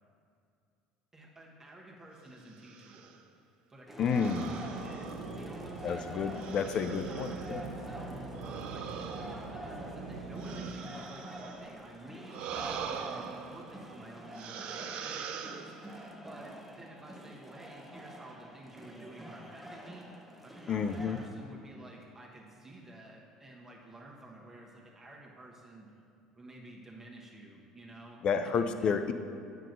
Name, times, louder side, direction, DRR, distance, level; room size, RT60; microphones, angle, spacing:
voice 1, 1.1-3.2 3.7-6.3 6.6-11.2 11.6-25.9 26.3-28.5 28.8-28.9, right 1 dB, 20° right, -3 dB, 1.2 m, -51 dB
sound 1, 2.5-3.2 4.1-5.7 6.3-7.6 8.3-11.7 12.3-13.9 14.3-16.1, right 7 dB, 60° right, 0.4 m, -43 dB
sound 2, 3.9-21.3, equal, 5° right, 0.8 m, -47 dB
voice 2, 4.0-4.6 5.8-7.6 20.7-21.2 28.2-29.1, left 6 dB, 50° left, 9 dB, 0.4 m, -30 dB
sound 3, 4.6-10.7, right 4 dB, 80° right, 0.8 m, -43 dB
8.9 x 5.8 x 2.6 m, 2.5 s
hypercardioid pair, 65°, 2 cm